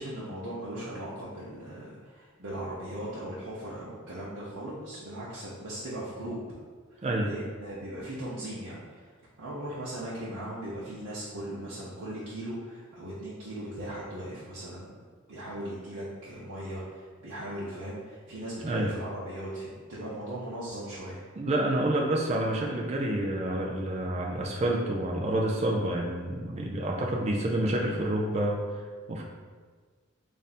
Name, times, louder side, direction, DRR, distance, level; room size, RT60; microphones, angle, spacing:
voice 1, 0.0-6.4 6.9-9.1 9.4-21.2, right 1 dB, 85° right, -9 dB, 0.8 m, -38 dB
voice 2, 7.0-7.3 18.6-18.9 21.4-29.2, right 1 dB, 30° right, -1 dB, 0.4 m, -28 dB
3.4 x 2.6 x 4.1 m, 1.5 s
head